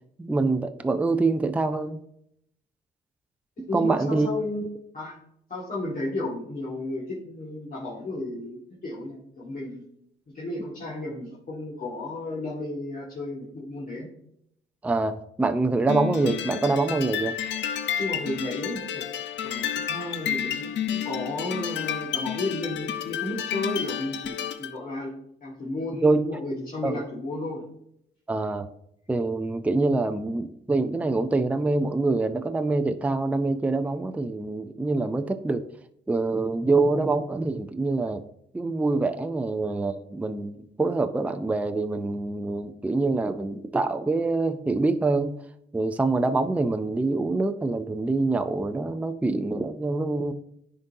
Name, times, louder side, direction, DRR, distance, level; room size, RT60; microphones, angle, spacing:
voice 1, 0.2-2.0 3.6-4.3 14.8-17.3 26.0-26.3 26.8-27.0 28.3-28.7 29.1-35.6 36.1-38.2 38.5-45.4 45.7-50.3, right 3 dB, 5° right, 8 dB, 0.4 m, -25 dB
voice 2, 3.6-4.7 4.9-5.2 5.5-9.8 10.3-14.1 17.9-19.1 19.4-25.1 25.4-27.6, left 2 dB, 45° left, -6 dB, 1.9 m, -33 dB
sound 1, 15.9-24.8, left 9 dB, 65° left, 0.6 m, -31 dB
10.5 x 3.9 x 2.7 m, 0.74 s
cardioid pair, 90°, 20 cm